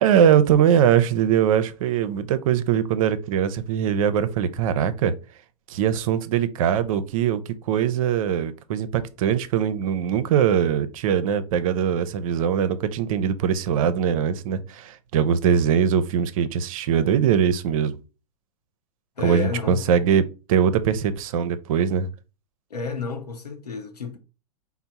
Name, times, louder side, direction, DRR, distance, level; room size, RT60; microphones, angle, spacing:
voice 1, 0.0-5.1 5.7-7.4 7.7-17.9 19.2-22.1, right 8 dB, 60° right, 0.5 m, -21 dB
voice 2, 19.2-19.9 22.7-24.2, left 5 dB, 90° left, 0.7 m, -31 dB
4.4 x 2.0 x 4.0 m
hypercardioid pair, 100°, 20 cm